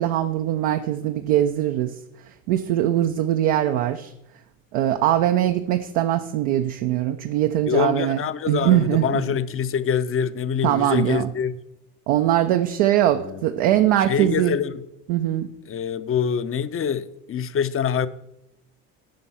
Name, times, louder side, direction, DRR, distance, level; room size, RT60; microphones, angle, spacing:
voice 1, 0.0-2.0 2.5-4.1 4.7-8.2 8.5-9.2 10.6-11.3 12.1-14.6 15.1-15.5, right 12 dB, 70° right, 0.7 m, -21 dB
voice 2, 7.7-11.5 13.1-13.4 13.7-14.8 15.7-18.1, left 7 dB, 30° left, 0.7 m, -25 dB
10.5 x 5.3 x 5.6 m
hypercardioid pair, 70°, 42 cm